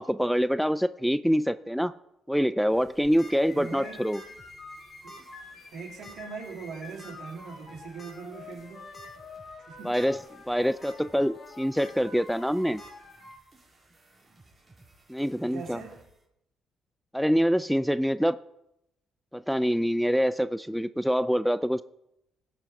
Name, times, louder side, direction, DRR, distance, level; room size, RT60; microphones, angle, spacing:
voice 1, 0.0-1.9 2.3-4.2 9.8-10.2 10.5-12.8 15.1-15.8 17.1-18.4 19.3-21.8, equal, ahead, 13 dB, 0.5 m, -25 dB
sound 1, 2.7-16.2, right 2 dB, 25° right, 3.9 m, -59 dB
sound 2, 2.9-3.3 4.1-4.4 4.6-4.7 5.1-5.2 6.0-6.3 7.0-7.1 8.0-8.1 8.6-8.7 8.9-9.1 9.7-10.1 10.5-10.9 11.8-11.9 12.8-12.9, equal, 25° left, 3.5 m, -48 dB
sound 3, 3.1-13.4, left 3 dB, 60° left, 3.2 m, -48 dB
voice 2, 3.5-4.1 5.0-5.2 5.7-8.9 9.7-10.0 15.5-16.0, right 5 dB, 70° right, 1 dB, 3.0 m, -41 dB
17.0 x 5.8 x 4.9 m, 0.83 s
supercardioid pair, 60°, 0 cm